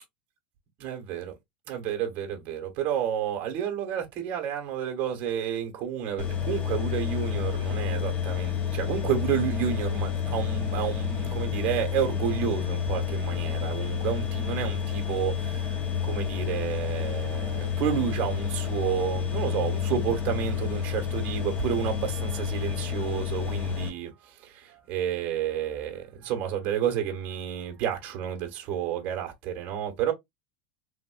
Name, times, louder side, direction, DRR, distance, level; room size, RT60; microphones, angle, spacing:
voice 1, 0.8-1.4 1.7-30.1, right 9 dB, 45° right, 1.2 m, -30 dB
sound 1, 6.2-23.9, left 8 dB, 30° left, 0.9 m, -30 dB
3.6 x 2.5 x 2.3 m
supercardioid pair, 145°, 5 cm